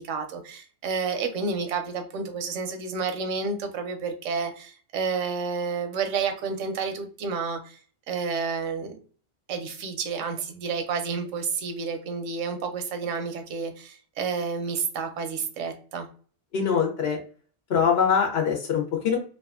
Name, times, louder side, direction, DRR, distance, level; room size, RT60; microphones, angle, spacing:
voice 1, 0.0-7.8 8.1-9.0 9.5-16.1, right 5 dB, 85° right, 6 dB, 0.9 m, -30 dB
voice 2, 16.5-17.2 17.7-19.2, left 7 dB, 60° left, 2 dB, 0.9 m, -23 dB
2.6 x 2.3 x 2.3 m, 0.42 s
omnidirectional pair, 1.3 m